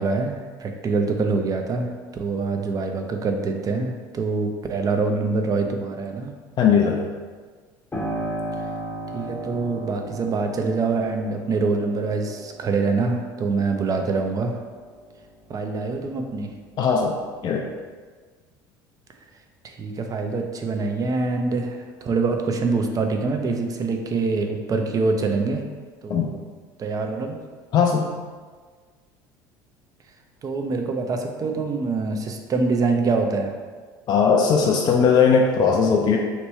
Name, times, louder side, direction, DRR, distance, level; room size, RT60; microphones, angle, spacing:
voice 1, 0.0-6.3 9.1-14.6 15.5-16.5 19.6-25.6 26.0-26.4 26.8-27.4 30.4-33.5, right 3 dB, 35° right, 4 dB, 0.5 m, -25 dB
voice 2, 6.6-7.0 16.8-17.2 17.4-17.7 26.1-26.3 27.7-28.1 34.1-36.2, left 6 dB, 40° left, 0 dB, 0.4 m, -18 dB
Piano, 7.9-16.4 16.8-17.8, right 1 dB, 15° left, 0.7 m, -36 dB
2.9 x 2.2 x 4.1 m, 1.5 s
hypercardioid pair, 80°, 11 cm